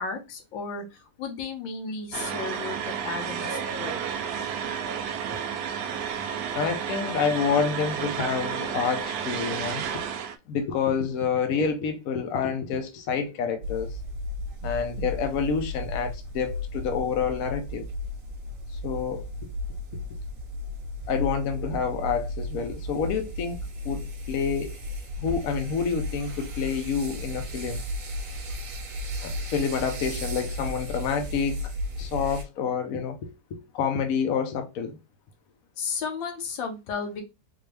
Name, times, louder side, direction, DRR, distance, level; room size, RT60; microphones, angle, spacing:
voice 1, 0.0-4.0 35.8-37.2, left 5 dB, 85° left, 1.6 m, -34 dB
sound 1, 2.1-10.3, right 7 dB, 75° right, 0.9 m, -31 dB
voice 2, 6.5-10.0 10.5-14.0 14.6-17.9 18.8-19.3 20.1-20.2 21.1-23.6 23.8-24.7 25.2-27.8 29.2-31.5 32.0-35.0, left 6 dB, 60° left, 1.0 m, -28 dB
sound 2, 13.6-32.4, left 1 dB, 55° right, 1.1 m, -34 dB
3.8 x 2.8 x 3.3 m
omnidirectional pair, 2.0 m